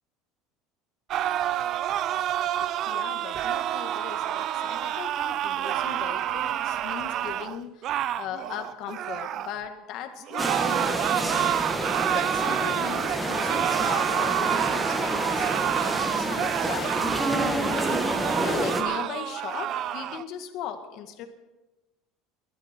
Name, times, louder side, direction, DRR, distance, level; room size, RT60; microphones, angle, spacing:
sound 1, 1.1-9.6 10.3-20.2, right 11 dB, 45° right, 0.5 m, -28 dB
voice 1, 2.6-11.1 11.4-21.3, left 9 dB, 55° left, 7 dB, 1.7 m, -38 dB
sound 2, 10.4-18.8, right 1 dB, 5° right, 1.6 m, -29 dB
20.5 x 12.0 x 4.4 m, 1.1 s
cardioid pair, 140°, 0 cm